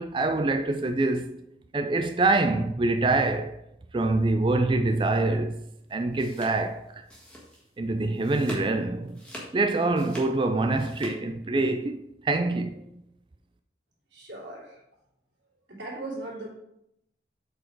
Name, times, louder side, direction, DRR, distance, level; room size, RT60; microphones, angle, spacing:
voice 1, 0.0-1.4 1.7-3.6 3.9-5.6 5.9-7.0 7.8-9.2 9.5-12.8, right 2 dB, 25° right, 0.3 m, -25 dB
sound 1, 5.9-7.8 8.1-8.7 9.1-11.1, equal, 5° left, 1.6 m, -43 dB
voice 2, 14.1-14.8 15.7-16.5, right 2 dB, 90° right, 2.9 m, -38 dB
7.6 x 4.3 x 4.6 m
head